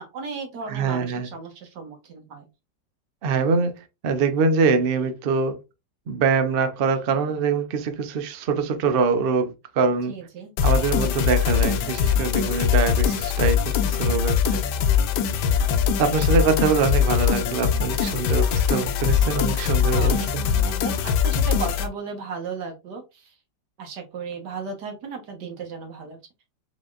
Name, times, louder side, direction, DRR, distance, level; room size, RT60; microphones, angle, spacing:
voice 1, 0.0-2.5 10.1-10.5 14.0-14.2 19.9-23.3 23.8-26.2, right 5 dB, 70° right, 1.7 m, -35 dB
voice 2, 0.7-1.3 3.2-3.8 4.0-5.6 6.1-10.1 10.6-14.6 16.0-20.4, right 5 dB, 85° right, 0.4 m, -24 dB
sound 1, 10.6-21.9, left 8 dB, 75° left, 1.2 m, -22 dB
5.1 x 3.8 x 2.4 m
omnidirectional pair, 1.9 m